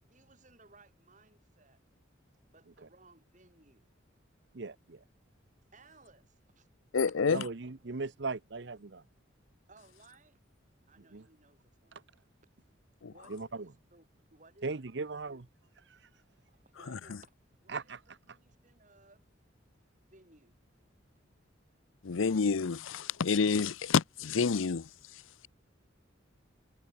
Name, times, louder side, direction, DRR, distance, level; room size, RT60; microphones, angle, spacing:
voice 1, 0.1-1.8 2.5-3.9 5.7-6.7 9.7-10.4 10.9-12.1 13.1-15.4 16.5-17.9 18.3-19.3 20.1-20.6, right 3 dB, 40° right, 6.8 m, -62 dB
voice 2, 4.5-5.0 7.3-9.0 11.1-11.2 11.9-12.0 13.3-13.7 14.6-15.5 15.9-16.1 17.7-18.4, right 3 dB, 60° right, 0.8 m, -39 dB
voice 3, 6.9-7.4 13.0-13.1 16.9-17.0 22.0-24.9, left 5 dB, 85° left, 0.6 m, -28 dB
head